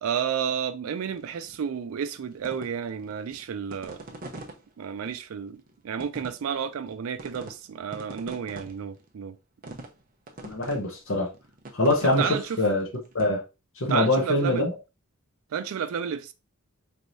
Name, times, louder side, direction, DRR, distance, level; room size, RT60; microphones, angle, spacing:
voice 1, 0.0-4.2 4.8-9.4 9.6-9.8 12.2-12.6 13.9-14.7 15.5-16.3, right 7 dB, 85° right, 0.4 m, -31 dB
sound 1, 1.1-1.6 2.0-4.6 5.1-5.2 5.6-5.7 6.0-6.9 7.2-7.5 7.8-9.1 9.6-10.0 10.3-10.8 11.2-13.3, right 2 dB, 40° right, 0.7 m, -42 dB
voice 2, 10.4-11.3 11.7-12.3 12.6-12.8 13.1-13.4 13.8-14.7, left 1 dB, 65° left, 0.8 m, -23 dB
4.4 x 3.2 x 2.6 m
head